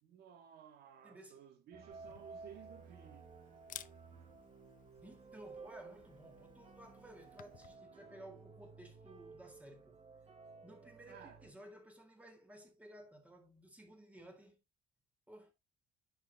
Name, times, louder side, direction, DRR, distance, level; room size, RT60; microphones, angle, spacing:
voice 1, 0.0-3.3 11.1-11.4, right 9 dB, 70° right, 2.3 m, -56 dB
voice 2, 1.0-1.4 5.0-10.0 10.6-14.6 15.3-15.5, right 1 dB, 10° right, 3.6 m, -56 dB
sound 1, 1.7-11.5, right 4 dB, 35° right, 3.2 m, -55 dB
Camera, 1.9-7.8, left 11 dB, 50° left, 0.7 m, -57 dB
10.5 x 7.0 x 2.7 m
cardioid pair, 110°, 17 cm